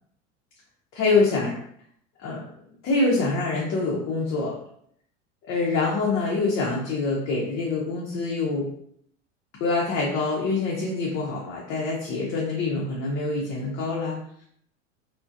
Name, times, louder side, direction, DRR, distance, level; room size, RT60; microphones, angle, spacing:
voice 1, 0.9-1.6 2.2-2.5 2.8-4.6 5.4-8.7 9.6-14.2, left 3 dB, 35° left, -3 dB, 0.6 m, -25 dB
2.3 x 2.1 x 2.5 m, 0.67 s
hypercardioid pair, 80°, 38 cm